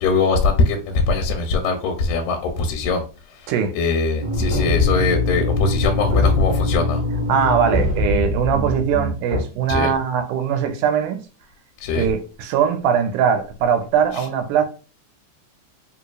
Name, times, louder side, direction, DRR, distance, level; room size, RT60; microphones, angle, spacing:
voice 1, 0.0-7.0 9.7-9.9 11.8-12.1 14.1-14.2, left 4 dB, 80° left, 1.8 m, -21 dB
sound 1, 4.2-9.4, left 2 dB, 35° right, 1.6 m, -22 dB
voice 2, 7.3-11.2 11.9-14.7, right 7 dB, 85° right, 2.1 m, -20 dB
4.5 x 2.8 x 2.3 m
omnidirectional pair, 3.5 m